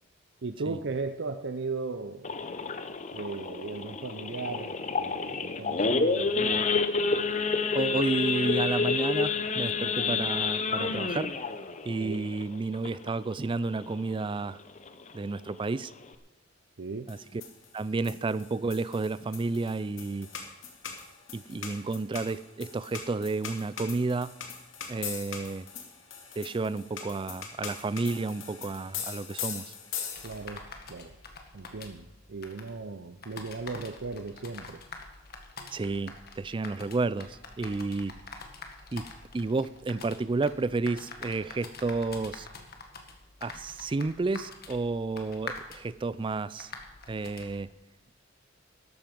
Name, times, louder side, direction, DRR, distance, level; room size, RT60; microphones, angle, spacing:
voice 1, 0.4-2.3 3.1-6.7 12.0-12.2 16.8-17.1 30.2-31.1 31.5-34.8, right 3 dB, 65° right, 9 dB, 0.7 m, -37 dB
Idling / Accelerating revving vroom / Sawing, 2.2-13.3 13.7-13.9 14.2-14.3 14.8-15.0 15.5-15.6 15.8-16.1, left 4 dB, 35° left, 0.8 m, -29 dB
voice 2, 7.7-11.3 11.8-14.6 15.1-15.9 17.1-17.4 17.7-20.3 21.3-24.4 24.9-25.7 26.4-29.7 35.7-38.2 38.9-42.5 43.4-46.7 47.1-47.7, right 3 dB, 25° right, 18 dB, 0.4 m, -31 dB
sound 1, 17.1-30.6, left 7 dB, 80° left, 2.3 m, -41 dB
sound 2, 30.1-47.6, left 4 dB, 55° left, 1.8 m, -46 dB
13.0 x 12.5 x 5.3 m, 0.95 s
head